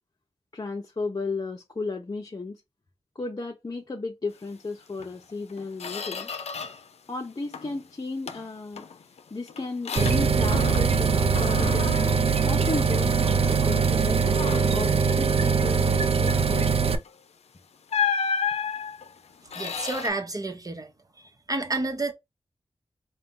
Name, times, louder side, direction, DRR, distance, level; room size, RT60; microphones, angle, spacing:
voice 1, 0.5-2.6 3.1-6.3 7.1-8.9 9.3-12.0 12.4-14.5 14.7-16.7, left 3 dB, 40° left, 0.7 m, -34 dB
Squeak, 5.0-5.1 5.5-6.9 7.2-7.8 8.3-11.1 11.3-13.2 13.6-13.8 14.3-14.9 17.0-17.2 17.9-20.1, left 6 dB, 80° left, 0.5 m, -32 dB
sound 1, 10.0-17.0, right 5 dB, 65° right, 0.6 m, -22 dB
voice 2, 19.5-20.9 21.5-22.1, right 2 dB, 35° right, 1.0 m, -29 dB
4.0 x 2.3 x 3.7 m
cardioid pair, 45°, 11 cm